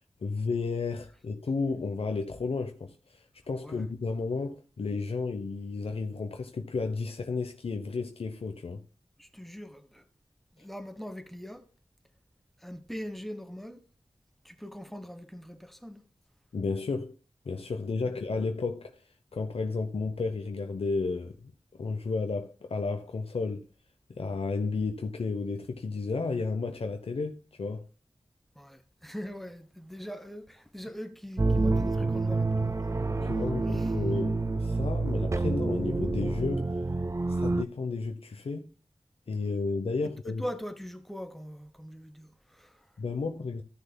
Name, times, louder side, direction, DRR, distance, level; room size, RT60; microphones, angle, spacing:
voice 1, 0.2-8.8 16.5-17.1 17.5-18.9 19.3-21.5 21.8-23.7 24.1-27.8 33.2-36.7 37.3-38.7 39.3-40.4 43.0-43.6, left 4 dB, 75° left, 0.7 m, -32 dB
voice 2, 9.2-10.1 10.5-11.7 12.6-13.8 14.4-16.0 18.0-18.2 28.5-32.9 33.3-33.9 40.3-42.9, equal, ahead, 1.1 m, -42 dB
sound 1, 31.4-37.6, right 3 dB, 30° right, 0.4 m, -28 dB
14.0 x 6.5 x 2.2 m
wide cardioid pair, 55°, 10 cm